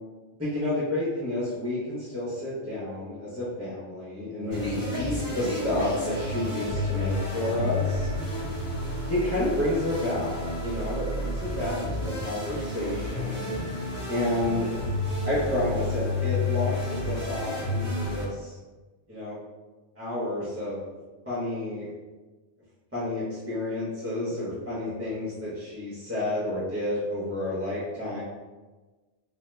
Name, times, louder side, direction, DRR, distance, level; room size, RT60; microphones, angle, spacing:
voice 1, 0.4-8.1 9.1-10.3 10.6-13.7 14.1-14.7 15.2-18.5 19.1-19.4 20.0-20.8 21.2-21.9 22.9-28.2, left 1 dB, 15° right, -9 dB, 0.9 m, -30 dB
sound 1, 4.5-18.2, left 1 dB, 60° left, 1.7 m, -31 dB
3.5 x 2.8 x 3.3 m, 1.3 s
omnidirectional pair, 1.2 m